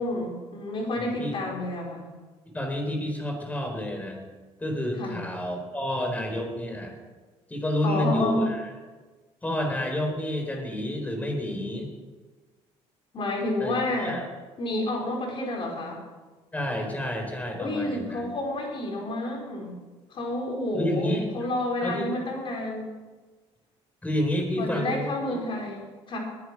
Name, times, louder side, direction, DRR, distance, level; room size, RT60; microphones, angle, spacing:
voice 1, 0.0-2.1 5.0-5.2 7.8-8.4 13.1-14.2 14.6-16.0 17.5-19.8 20.1-22.9 24.6-26.2, left 1 dB, 45° left, 0 dB, 4.9 m, -29 dB
voice 2, 1.0-1.4 2.5-4.2 4.6-6.9 7.5-8.6 9.4-11.9 13.6-13.8 14.0-14.2 16.5-18.2 20.7-21.2 21.8-22.1 24.0-25.1, left 1 dB, 15° left, 3 dB, 4.2 m, -29 dB
20.0 x 9.8 x 6.2 m, 1.3 s
cardioid pair, 115°, 12 cm